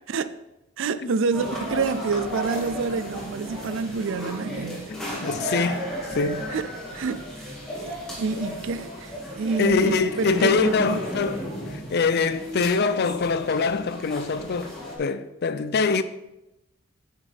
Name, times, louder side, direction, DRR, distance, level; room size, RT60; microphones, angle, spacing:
voice 1, 0.1-0.4 0.8-4.9 6.5-6.7 6.9-11.2, right 4 dB, 65° right, 0.4 m, -28 dB
sound 1, 1.3-15.0, equal, ahead, 2.2 m, -34 dB
voice 2, 4.9-6.5 9.6-11.4 11.7-16.0, left 4 dB, 50° left, 0.4 m, -24 dB
8.9 x 6.5 x 3.5 m
head